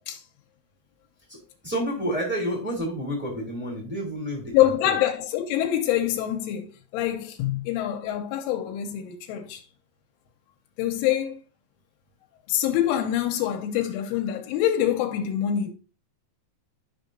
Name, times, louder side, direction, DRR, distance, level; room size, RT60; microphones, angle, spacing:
voice 1, 1.6-4.6 4.8-4.9, equal, 5° right, 0.8 m, -29 dB
voice 2, 4.5-9.6 10.8-11.4 12.5-15.7, left 11 dB, 85° left, 3.1 m, -25 dB
12.0 x 5.5 x 2.6 m
omnidirectional pair, 5.7 m